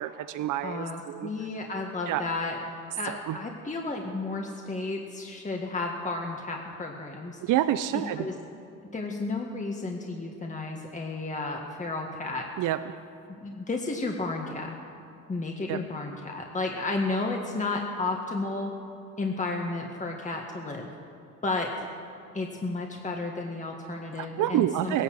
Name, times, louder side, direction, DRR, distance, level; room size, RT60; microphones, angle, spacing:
voice 1, 0.0-1.3 2.1-2.2 3.1-3.4 7.4-8.3 12.6-13.0 15.7-15.8 24.2-25.0, right 12 dB, 85° right, 11 dB, 0.6 m, -28 dB
voice 2, 0.6-2.7 3.0-7.4 8.2-8.3 8.9-12.5 13.4-14.7 15.3-18.7 19.2-20.9 21.4-21.7 22.3-25.0, left 3 dB, 25° left, 1 dB, 1.7 m, -32 dB
17.5 x 11.0 x 7.7 m, 2.6 s
cardioid pair, 90°, 30 cm